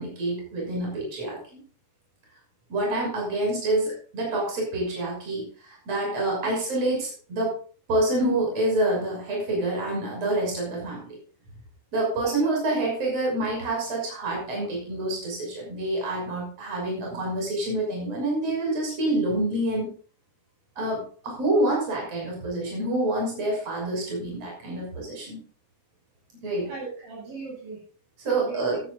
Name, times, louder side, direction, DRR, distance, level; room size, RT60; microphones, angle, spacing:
voice 1, 0.0-1.6 2.7-7.6 7.9-11.2 11.9-19.9 20.8-25.4 26.4-26.7 28.2-28.8, right 2 dB, 45° right, -2 dB, 7.4 m, -27 dB
voice 2, 12.1-12.5 26.6-27.8 28.3-28.8, right 4 dB, 85° right, -3 dB, 9.9 m, -38 dB
15.0 x 15.0 x 2.6 m, 0.41 s
omnidirectional pair, 4.2 m